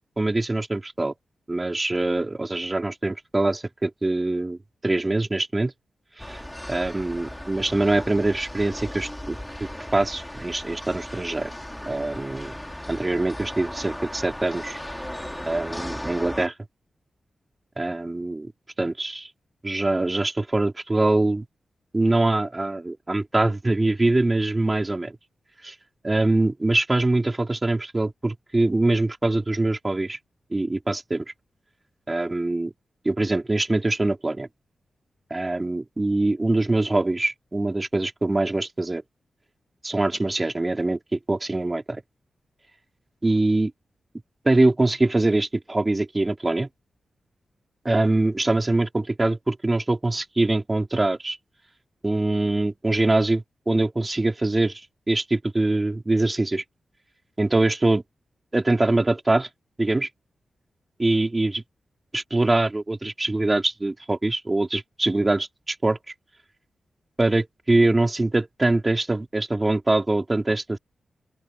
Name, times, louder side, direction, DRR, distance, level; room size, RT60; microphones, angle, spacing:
voice 1, 0.2-1.1 1.5-4.6 4.8-5.7 6.2-6.4 6.7-9.4 9.9-11.5 11.9-12.5 12.9-14.8 15.5-16.5 17.8-18.5 18.8-19.3 19.6-21.5 21.9-25.2 25.6-25.7 26.0-30.2 30.5-31.2 32.1-32.7 33.1-34.5 35.3-39.0 39.8-42.0 43.2-43.7 44.5-46.7 47.8-51.4 52.0-54.8 55.1-56.6 57.4-58.0 58.5-59.5 59.8-60.1 61.0-61.6 62.1-66.0 67.2-70.8, right 2 dB, 30° right, 3.7 m, -23 dB
sound 1, 6.2-16.5, left 1 dB, 10° left, 2.7 m, -36 dB
open air
supercardioid pair, 45°, 0 cm